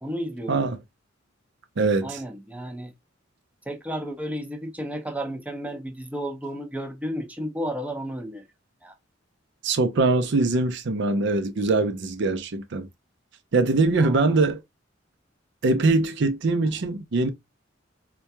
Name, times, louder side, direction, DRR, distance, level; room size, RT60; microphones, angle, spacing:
voice 1, 0.0-0.7 2.0-2.9 3.7-8.4 8.8-8.9 14.0-14.3, equal, 5° right, 0.6 m, -33 dB
voice 2, 1.8-2.2 9.6-12.9 13.5-14.6 15.6-17.3, right 3 dB, 60° right, 0.6 m, -22 dB
4.4 x 2.3 x 2.6 m
head